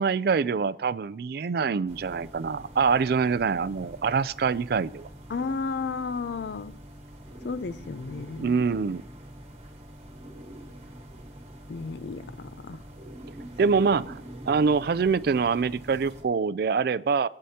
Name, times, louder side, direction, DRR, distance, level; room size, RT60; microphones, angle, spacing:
voice 1, 0.0-5.1 8.4-9.0 13.6-17.3, right 5 dB, 60° right, 0.4 m, -25 dB
sound 1, 1.9-16.2, equal, 35° right, 1.3 m, -45 dB
voice 2, 5.3-6.8 7.4-8.6 11.7-12.8, left 4 dB, 70° left, 0.5 m, -33 dB
22.0 x 8.9 x 2.8 m
head